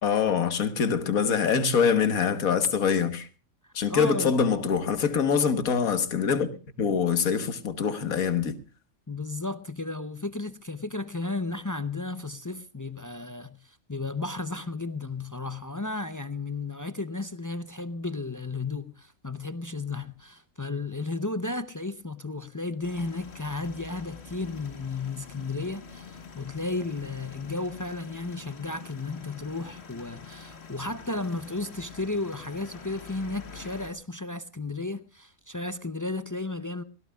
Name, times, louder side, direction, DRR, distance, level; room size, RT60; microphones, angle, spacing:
voice 1, 0.0-3.3 3.7-8.6, left 6 dB, 80° left, 1.8 m, -24 dB
voice 2, 3.6-4.4 9.1-36.8, left 3 dB, 25° left, 0.4 m, -34 dB
sound 1, 22.8-33.9, left 5 dB, 50° left, 1.6 m, -46 dB
24.0 x 17.0 x 2.3 m
omnidirectional pair, 1.5 m